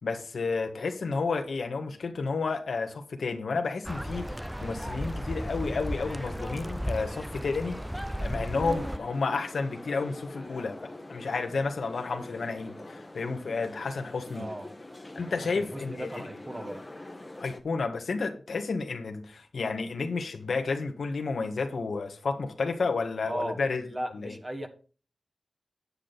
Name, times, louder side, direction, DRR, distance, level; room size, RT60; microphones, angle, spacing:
voice 1, 0.0-7.8 8.2-14.5 15.1-16.2 17.4-23.8 24.1-24.3, left 4 dB, 80° left, 6 dB, 1.6 m, -31 dB
sound 1, 3.9-9.0, equal, ahead, 0.4 m, -34 dB
sound 2, 8.7-17.6, left 2 dB, 15° left, 1.3 m, -44 dB
voice 2, 14.3-14.7 15.5-16.9 23.3-24.7, right 1 dB, 20° right, 5 dB, 1.5 m, -37 dB
9.8 x 8.7 x 4.1 m, 0.37 s
wide cardioid pair, 125°, 0 cm